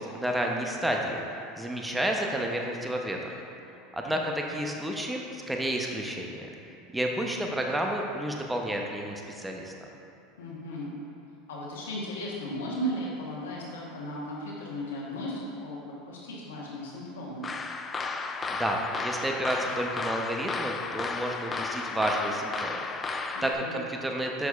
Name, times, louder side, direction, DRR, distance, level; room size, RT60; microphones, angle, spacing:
voice 1, 0.0-3.4 3.9-6.5 6.9-9.7 18.5-24.5, right 1 dB, 10° right, 1 dB, 0.7 m, -31 dB
voice 2, 4.0-4.6 10.4-10.9 11.5-17.5 23.3-23.8, equal, 85° left, -5 dB, 1.1 m, -36 dB
sound 1, 17.4-23.5, left 4 dB, 25° left, 0.3 m, -33 dB
7.1 x 6.0 x 2.4 m, 2.7 s
hypercardioid pair, 95°, 0 cm